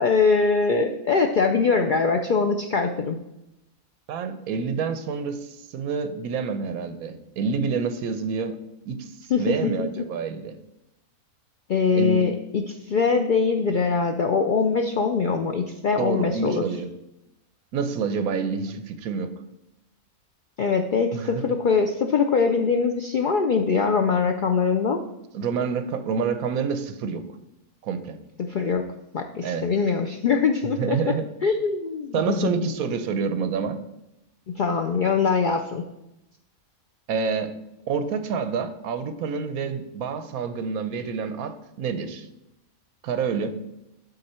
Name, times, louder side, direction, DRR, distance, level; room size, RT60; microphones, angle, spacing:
voice 1, 0.0-3.2 9.3-10.0 11.7-16.6 20.6-25.0 28.4-31.0 31.4-32.5 34.5-35.8, left 5 dB, 90° left, 5 dB, 0.4 m, -23 dB
voice 2, 4.1-8.6 8.8-10.5 11.9-12.2 16.0-16.9 17.7-19.3 21.1-21.5 25.3-27.2 27.8-28.2 29.4-29.7 30.8-31.3 32.1-33.8 37.1-37.5 37.9-42.3 43.0-43.5, right 5 dB, 80° right, 10 dB, 1.2 m, -28 dB
12.0 x 4.0 x 4.3 m, 0.89 s
omnidirectional pair, 1.5 m